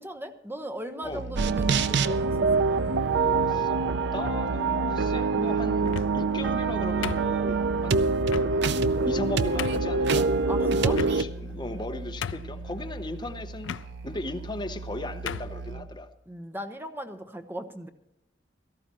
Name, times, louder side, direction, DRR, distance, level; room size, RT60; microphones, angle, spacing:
voice 1, 0.0-3.0 10.5-11.0 16.3-17.9, equal, 10° right, 7 dB, 0.9 m, -38 dB
Musical instrument, 1.0-16.0, right 2 dB, 90° right, 0.9 m, -38 dB
sound 1, 1.3-11.2, right 4 dB, 65° right, 0.5 m, -25 dB
voice 2, 4.1-8.1 9.0-13.8 14.0-16.1, left 2 dB, 25° left, 6 dB, 0.8 m, -37 dB
sound 2, 5.8-6.3 7.0-7.7 8.3-8.5 9.1-9.2 9.6-9.9 10.9-11.5 11.8-11.9 12.2-12.7 13.6-13.9 14.7-14.9 15.3-15.6, left 8 dB, 85° left, 0.4 m, -35 dB
17.0 x 14.0 x 3.0 m, 0.85 s
head